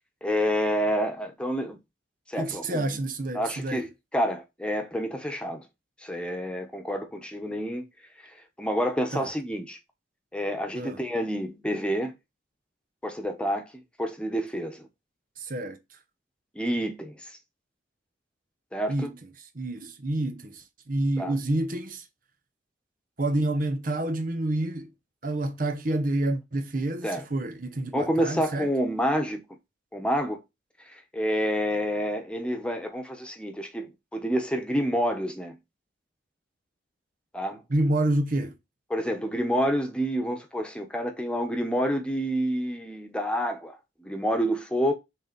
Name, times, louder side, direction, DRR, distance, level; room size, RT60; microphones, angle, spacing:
voice 1, 0.2-1.8 2.3-3.0 3.3-3.9 4.1-5.6 6.0-7.8 8.6-9.8 10.3-12.1 13.0-13.7 14.0-14.9 16.5-17.4 18.7-19.1 21.2-21.4 27.0-27.2 27.9-29.4 29.9-30.4 30.9-35.5 37.3-37.6 38.9-44.9, equal, 5° left, 1.2 m, -28 dB
voice 2, 2.4-3.9 9.1-9.3 10.7-11.0 15.4-15.8 18.9-22.0 23.2-24.9 25.2-28.7 37.7-38.5, right 1 dB, 45° right, 0.9 m, -28 dB
6.7 x 3.9 x 5.2 m
head